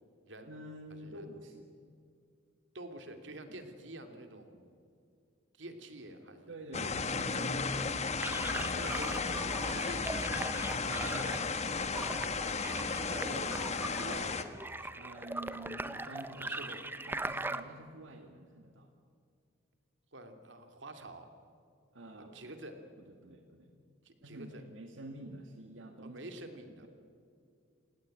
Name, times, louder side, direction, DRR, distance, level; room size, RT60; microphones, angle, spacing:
voice 1, 0.4-1.7 3.5-3.6 6.5-8.4 10.9-11.6 14.9-16.5 17.0-18.9 21.9-22.5 23.0-23.8 24.2-26.2, right 1 dB, 90° right, 4 dB, 2.1 m, -48 dB
voice 2, 2.7-4.7 5.5-6.5 8.7-10.4 12.8-14.5 14.8-14.9 16.4-16.8 20.1-21.3 22.2-22.8 24.0-24.6 26.0-26.9, right 1 dB, 70° right, 6 dB, 2.9 m, -47 dB
sound 1, 6.7-14.4, left 4 dB, 35° left, 1.4 m, -34 dB
sound 2, 8.2-17.6, right 2 dB, 10° right, 1.0 m, -40 dB
29.0 x 18.0 x 9.0 m, 2.4 s
head